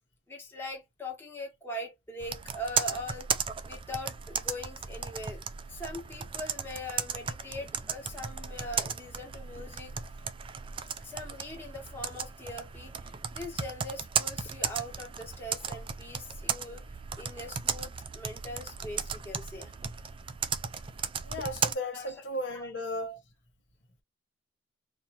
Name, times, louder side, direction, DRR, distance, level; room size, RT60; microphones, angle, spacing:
voice 1, 0.3-3.3 3.7-5.4 5.7-9.9 11.0-16.8 17.2-19.7 21.9-22.2 22.5-22.8, left 1 dB, 10° left, 1.1 m, -41 dB
Computer keyboard, 2.2-21.7, right 7 dB, 30° right, 0.3 m, -35 dB
voice 2, 21.2-23.2, left 1 dB, 80° left, 1.2 m, -35 dB
4.3 x 2.4 x 2.8 m
head